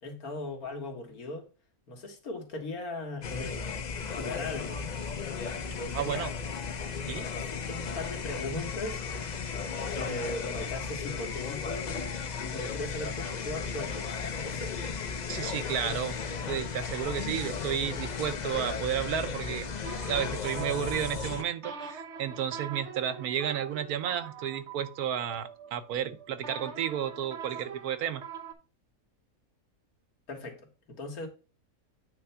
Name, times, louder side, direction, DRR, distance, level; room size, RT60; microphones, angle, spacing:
voice 1, 0.0-1.5 1.9-3.7 4.1-4.8 5.7-6.3 7.2-9.3 9.9-12.1 12.4-14.8 30.3-31.3, left 2 dB, 80° left, 2.1 m, -38 dB
sound 1, 3.2-21.4, left 5 dB, 45° left, 0.5 m, -35 dB
voice 2, 5.9-6.3 7.1-7.3 15.3-19.7 20.1-28.2, right 9 dB, 85° right, 1.3 m, -32 dB
sound 2, 19.7-28.5, right 7 dB, 50° right, 1.2 m, -43 dB
8.7 x 3.3 x 5.6 m
omnidirectional pair, 1.5 m